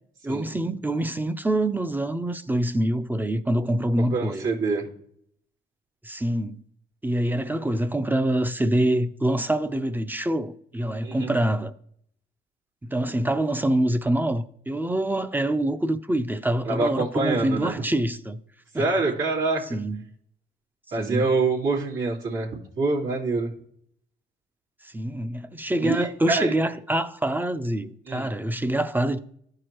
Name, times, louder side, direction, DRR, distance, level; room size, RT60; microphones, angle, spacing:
voice 1, 0.2-4.5 6.0-6.6 7.0-11.7 12.8-18.4 18.7-18.9 19.7-20.1 21.0-21.3 24.8-29.2, right 1 dB, 10° right, 0.5 m, -25 dB
voice 2, 4.0-4.9 11.0-11.3 16.6-17.7 18.7-19.6 20.9-22.5 22.8-23.5 25.8-26.5 28.1-28.3, right 3 dB, 80° right, 2.8 m, -25 dB
14.0 x 4.8 x 3.0 m
cardioid pair, 90°, 20 cm